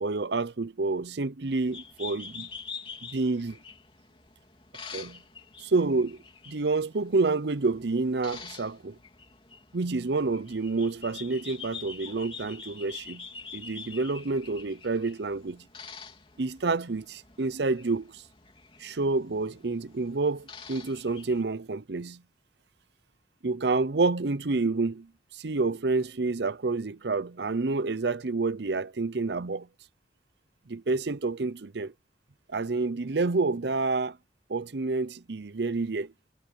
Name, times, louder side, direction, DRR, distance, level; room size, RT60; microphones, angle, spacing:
voice 1, 0.0-2.5 3.1-3.6 4.9-5.2 5.6-6.2 6.5-9.0 9.7-13.3 13.5-15.6 16.4-18.2 18.8-22.2 23.4-29.7 30.7-31.9 32.5-34.2 34.5-36.3, right 3 dB, 70° right, 0.7 m, -28 dB
sound 1, 1.5-21.4, left 5 dB, 30° left, 3.1 m, -46 dB
head